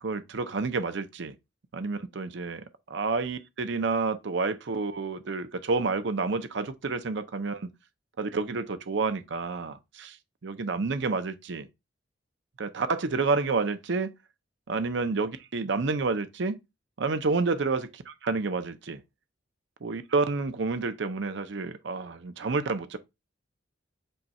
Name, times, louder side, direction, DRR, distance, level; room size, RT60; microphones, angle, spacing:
voice 1, 0.0-1.4 1.7-7.7 8.2-10.2 10.4-11.7 12.6-14.1 14.7-16.6 17.0-19.0 19.8-23.0, right 4 dB, 65° right, 0.6 m, -29 dB
5.4 x 2.3 x 4.2 m
head